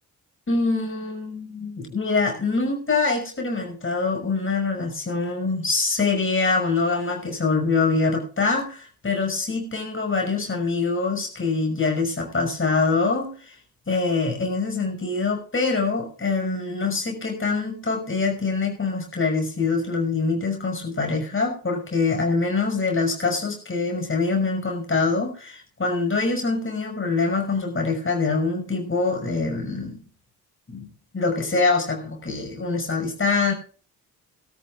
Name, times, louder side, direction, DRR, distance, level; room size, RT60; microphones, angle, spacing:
voice 1, 0.5-13.6 13.9-30.0 30.7-30.9 31.1-33.5, left 4 dB, 25° left, 1 dB, 5.9 m, -24 dB
20.5 x 13.0 x 2.5 m, 0.40 s
figure-of-eight pair, 40°, 45 cm